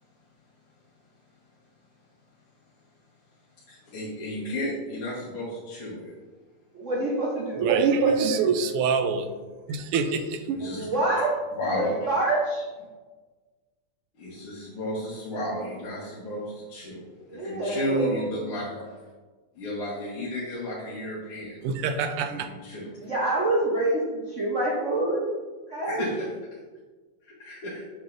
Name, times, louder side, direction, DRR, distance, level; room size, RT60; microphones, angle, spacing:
voice 1, 3.7-6.1 10.5-10.9 11.5-12.1 14.2-19.0 19.6-21.6 22.3-22.9 25.9-26.3 27.3-27.8, equal, 75° left, -7 dB, 2.1 m, -33 dB
voice 2, 6.7-7.7 10.6-11.4 11.7-12.7 17.3-18.2 23.0-25.2 25.7-26.0, right 2 dB, 55° right, -5 dB, 0.9 m, -26 dB
voice 3, 7.6-9.3 9.7-10.6 21.6-22.5, right 5 dB, 85° right, 7 dB, 1.6 m, -24 dB
7.8 x 5.5 x 2.6 m, 1.3 s
omnidirectional pair, 2.4 m